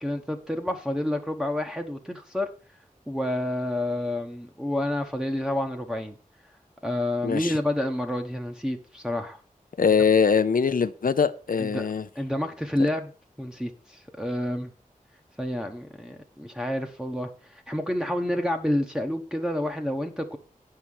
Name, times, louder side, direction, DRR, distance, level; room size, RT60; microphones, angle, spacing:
voice 1, 0.0-2.5 3.1-6.2 6.8-9.4 11.6-11.8 12.1-13.1 13.4-14.7 15.4-20.4, left 1 dB, 5° right, 1.1 m, -29 dB
voice 2, 7.2-7.6 9.8-12.0, left 6 dB, 75° left, 0.6 m, -22 dB
8.9 x 5.7 x 6.4 m
wide cardioid pair, 85°, 15 cm